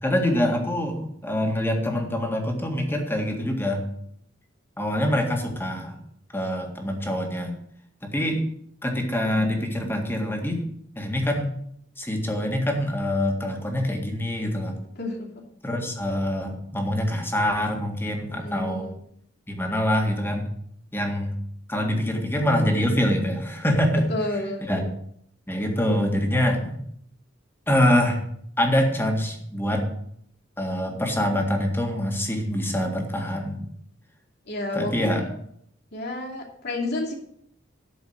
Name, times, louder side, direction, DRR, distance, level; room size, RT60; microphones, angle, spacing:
voice 1, 0.0-3.8 4.8-6.0 6.3-7.5 8.0-8.4 8.8-10.6 11.0-11.5 12.0-14.7 15.6-18.9 19.5-20.5 20.9-21.3 21.7-24.4 24.7-24.8 25.5-26.8 27.7-28.2 28.6-29.8 30.6-33.7 34.7-35.2, left 1 dB, 10° left, 2 dB, 1.9 m, -25 dB
voice 2, 15.0-15.3 18.3-18.9 24.1-24.9 34.5-35.3 35.9-37.1, left 2 dB, 55° left, -1 dB, 2.6 m, -30 dB
12.5 x 5.1 x 7.9 m, 0.69 s
head